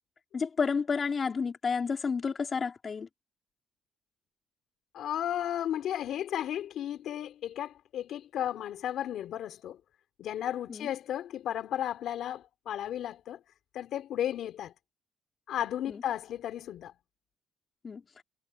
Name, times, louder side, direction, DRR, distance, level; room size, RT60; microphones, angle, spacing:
voice 1, 0.3-3.1 10.7-10.9 15.9-16.0 17.8-18.0, left 5 dB, 40° left, 4.2 m, -30 dB
voice 2, 4.9-9.8 10.2-13.4 13.7-14.7 15.5-16.9, left 11 dB, 75° left, 3.7 m, -34 dB
cardioid pair, 90°, 0 cm